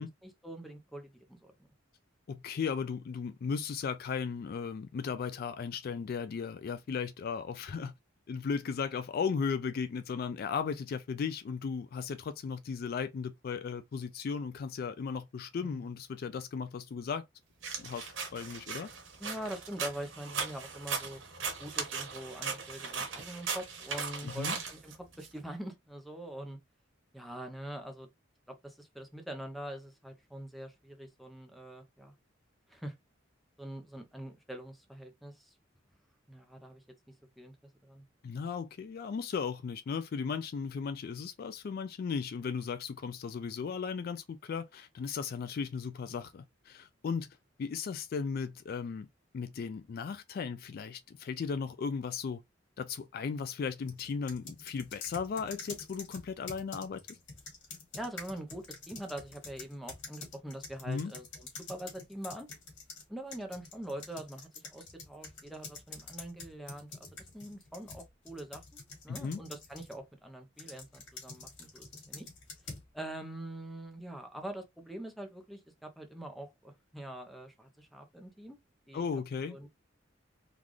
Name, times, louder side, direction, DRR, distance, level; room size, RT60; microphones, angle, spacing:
voice 1, 0.0-1.5 15.6-15.8 19.2-21.2 21.6-26.6 27.1-28.1 28.5-32.1 32.7-32.9 33.6-35.5 36.3-36.8 37.4-37.5 37.8-38.0 57.9-62.5 63.1-67.1 67.3-72.3 72.9-78.6 78.9-79.2 79.5-79.7, right 1 dB, ahead, 0.7 m, -44 dB
voice 2, 2.3-7.9 8.3-17.2 17.8-18.9 24.2-24.6 38.2-49.1 49.3-52.4 52.8-57.2 60.9-61.1 69.1-69.4 78.9-79.6, left 5 dB, 50° left, 0.3 m, -36 dB
sound 1, 17.6-25.3, right 5 dB, 90° right, 1.1 m, -38 dB
sound 2, 53.9-63.0 63.3-70.0 70.6-72.9, left 4 dB, 75° left, 1.9 m, -47 dB
3.8 x 2.5 x 3.1 m
head